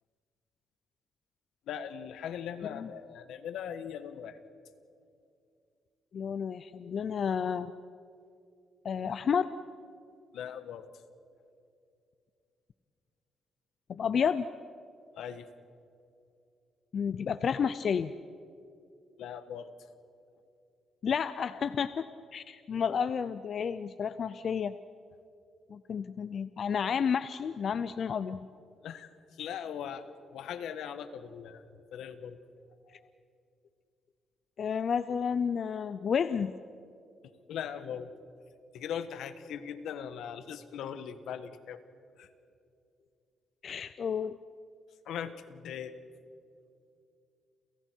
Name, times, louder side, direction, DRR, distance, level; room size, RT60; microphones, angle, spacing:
voice 1, 1.7-4.4 10.3-10.9 15.1-15.5 19.2-19.7 28.8-31.6 31.9-32.4 32.9-33.0 37.5-38.1 38.7-41.8 42.2-42.3 45.0-46.0, left 8 dB, 80° left, 11 dB, 1.4 m, -40 dB
voice 2, 6.1-7.7 8.8-9.5 13.9-14.4 16.9-18.1 21.0-22.1 22.3-24.7 25.7-28.4 34.6-36.5 43.6-44.4, left 7 dB, 55° left, 13 dB, 0.6 m, -31 dB
30.0 x 28.5 x 4.6 m, 2.5 s
cardioid pair, 105°, 0 cm